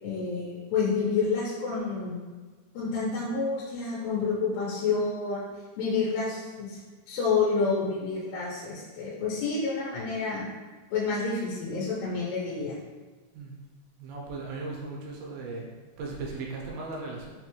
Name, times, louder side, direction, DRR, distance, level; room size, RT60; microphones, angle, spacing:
voice 1, 0.0-2.2 2.7-5.4 5.8-6.8 7.1-10.4 10.9-12.8, left 4 dB, 90° left, -6 dB, 2.8 m, -29 dB
voice 2, 14.0-15.7 16.0-17.3, right 3 dB, 80° right, -2 dB, 2.3 m, -37 dB
6.1 x 2.2 x 3.0 m, 1.4 s
omnidirectional pair, 4.6 m